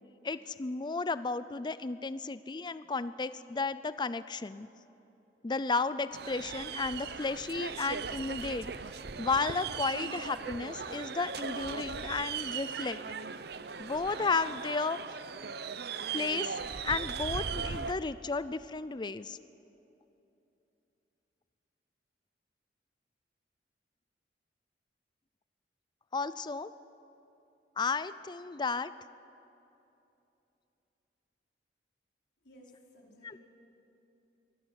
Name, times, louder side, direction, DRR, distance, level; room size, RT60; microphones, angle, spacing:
voice 1, 0.2-4.7 5.4-8.7 9.2-13.0 13.8-15.0 16.1-16.6 16.8-19.4 26.1-26.7 27.8-28.9 33.2-33.4, left 4 dB, 25° left, 15 dB, 0.4 m, -33 dB
sound 1, 6.1-17.9, right 6 dB, 65° right, 0.7 m, -38 dB
voice 2, 32.4-33.4, equal, 80° left, -3 dB, 4.9 m, -57 dB
23.5 x 13.5 x 9.7 m, 2.9 s
head